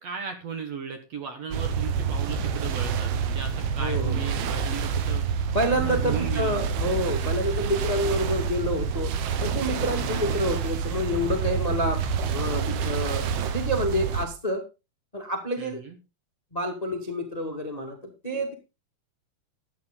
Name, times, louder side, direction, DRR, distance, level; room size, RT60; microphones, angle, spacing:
voice 1, 0.0-5.3 5.7-6.6 10.1-10.4 15.6-16.0, right 6 dB, 55° right, 7 dB, 2.0 m, -36 dB
sound 1, 1.5-14.3, right 6 dB, 75° right, 3.2 m, -28 dB
voice 2, 3.8-4.3 5.5-9.1 9.4-12.0 12.3-13.3 13.5-14.6 15.1-15.8 16.5-18.5, equal, 25° left, 5 dB, 0.9 m, -28 dB
13.0 x 9.4 x 3.9 m, 0.28 s
omnidirectional pair, 4.5 m